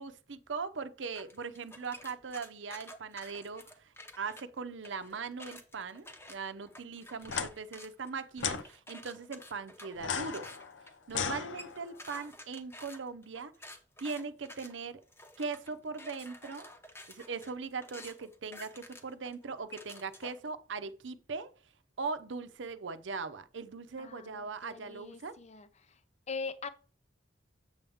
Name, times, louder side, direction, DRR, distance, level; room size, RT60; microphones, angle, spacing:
voice 1, 0.0-10.5 11.1-13.5 14.0-15.0 15.4-16.7 17.1-21.5 22.0-25.4, right 4 dB, 85° right, 0.7 m, -40 dB
sound 1, 1.1-4.4 4.8-20.5, left 1 dB, 15° left, 0.9 m, -51 dB
sound 2, 7.2-7.5 8.4-8.6 10.0-12.0, left 7 dB, 85° left, 0.7 m, -36 dB
voice 2, 24.0-26.0 26.3-26.7, left 4 dB, 35° left, 0.6 m, -42 dB
7.9 x 7.0 x 3.5 m
head